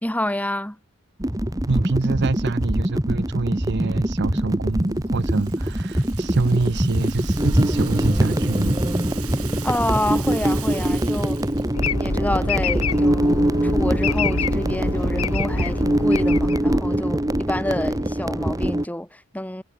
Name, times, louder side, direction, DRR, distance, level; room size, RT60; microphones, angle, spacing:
voice 1, 0.0-0.8 9.6-11.4 11.9-19.6, left 1 dB, 5° left, 2.3 m, -28 dB
sound 1, 1.2-18.9, right 1 dB, 15° right, 1.5 m, -23 dB
voice 2, 1.7-8.8, right 3 dB, 50° right, 0.7 m, -25 dB
Rattle (instrument), 4.8-11.7, right 13 dB, 85° right, 6.5 m, -40 dB
sound 2, 11.7-17.2, left 3 dB, 80° left, 3.5 m, -26 dB
head